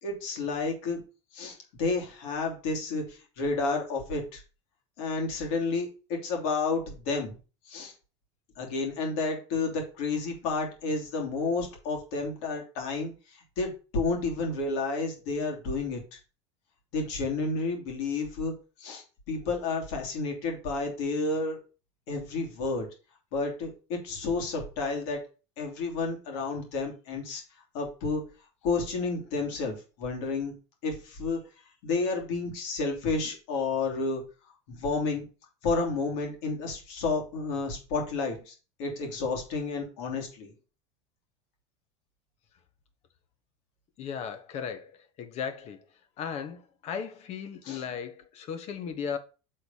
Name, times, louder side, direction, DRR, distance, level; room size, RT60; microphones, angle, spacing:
voice 1, 0.0-1.0 1.3-4.4 5.0-7.4 7.6-7.9 8.6-16.2 16.9-21.6 22.1-22.9 23.3-25.2 25.6-27.4 27.7-28.2 28.6-30.5 30.8-31.4 31.8-34.2 34.7-35.3 35.6-40.5 47.6-47.8, left 3 dB, 70° left, 3.0 m, -31 dB
voice 2, 44.0-45.8 46.2-49.2, left 7 dB, 45° left, 1.3 m, -36 dB
6.7 x 3.9 x 5.5 m
supercardioid pair, 110°, 15 cm